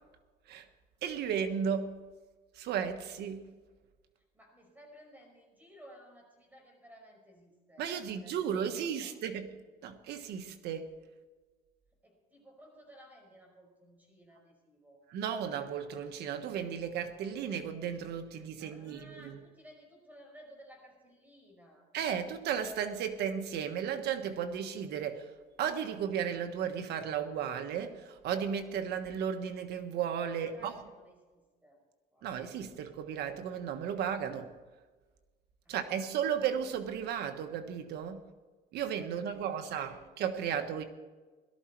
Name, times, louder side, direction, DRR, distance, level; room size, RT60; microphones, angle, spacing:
voice 1, 1.0-2.0 2.5-3.5 7.8-9.6 9.8-10.9 15.1-19.4 21.9-30.8 32.2-34.5 35.7-38.2 38.7-40.8, right 8 dB, 75° right, 8 dB, 1.4 m, -34 dB
voice 2, 4.2-9.2 12.0-15.0 18.6-21.9 30.3-31.8 32.1-32.3 39.1-40.2, equal, 10° right, 1 dB, 5.6 m, -57 dB
17.5 x 13.0 x 4.6 m, 1.3 s
cardioid pair, 110°, 17 cm